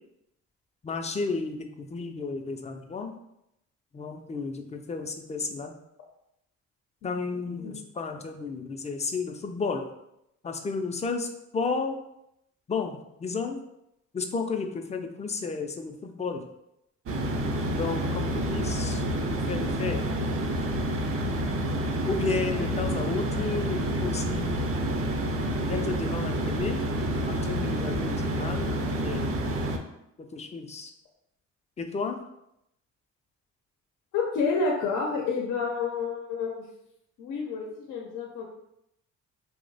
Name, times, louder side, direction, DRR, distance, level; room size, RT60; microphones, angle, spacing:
voice 1, 0.8-3.1 3.9-5.7 7.0-9.9 10.4-12.0 12.7-13.6 14.1-16.4 17.7-19.0 19.3-20.1 22.1-24.7 25.7-26.8 27.3-29.3 30.3-30.9 31.8-32.2, left 4 dB, 25° left, 5 dB, 0.4 m, -32 dB
sound 1, 17.1-29.8, right 1 dB, 50° right, 0.5 m, -28 dB
voice 2, 34.1-36.6 37.2-38.4, left 4 dB, 85° left, 0 dB, 0.6 m, -29 dB
2.8 x 2.1 x 3.9 m, 0.80 s
cardioid pair, 90°, 30 cm